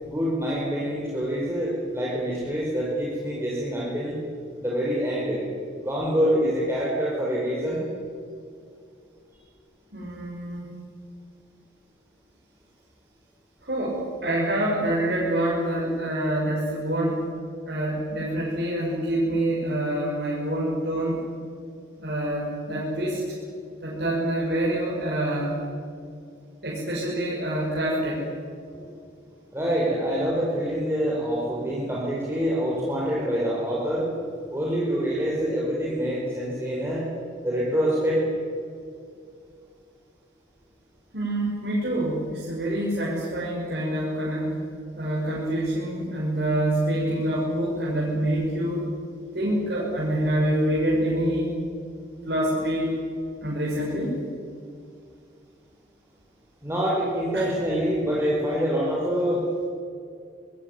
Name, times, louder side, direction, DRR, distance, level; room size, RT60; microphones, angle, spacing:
voice 1, 0.0-4.2 4.6-5.4 5.7-7.8 28.7-28.8 29.5-34.1 34.5-37.0 37.4-38.2 56.6-59.4, equal, 15° right, -5 dB, 5.0 m, -26 dB
voice 2, 9.9-10.8 13.6-17.2 17.6-21.3 22.0-23.2 23.8-25.7 26.6-28.3 41.1-44.6 44.9-48.9 49.3-51.5 52.2-52.9 53.4-54.2 57.3-57.5, right 1 dB, 55° right, -5 dB, 5.9 m, -26 dB
25.5 x 20.0 x 9.6 m, 2.3 s
head